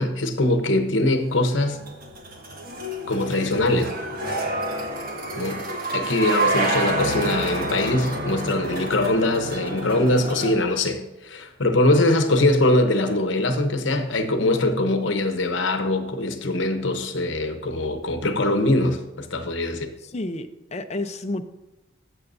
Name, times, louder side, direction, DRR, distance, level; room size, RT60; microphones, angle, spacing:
voice 1, 0.0-1.8 3.1-3.9 5.4-5.6 5.9-19.9, left 1 dB, 70° left, 1.0 m, -22 dB
sound 1, 1.2-10.5, right 1 dB, 50° right, 1.5 m, -28 dB
voice 2, 20.0-21.5, left 2 dB, 35° left, 0.6 m, -31 dB
15.5 x 7.0 x 2.7 m
head